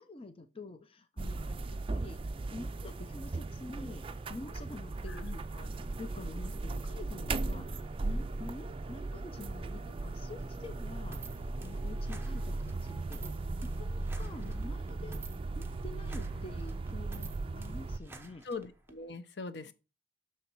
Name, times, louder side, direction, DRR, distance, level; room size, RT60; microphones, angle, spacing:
voice 1, 0.0-2.2 2.5-4.0 4.3-15.2 15.6-18.5 19.6-19.7, left 2 dB, 30° left, 0.6 m, -47 dB
sound 1, 1.2-18.0, right 2 dB, 30° right, 0.4 m, -37 dB
sound 2, 11.1-19.0, right 3 dB, 15° right, 0.8 m, -51 dB
voice 2, 18.4-19.7, left 4 dB, 70° left, 0.8 m, -41 dB
7.0 x 6.3 x 4.5 m
head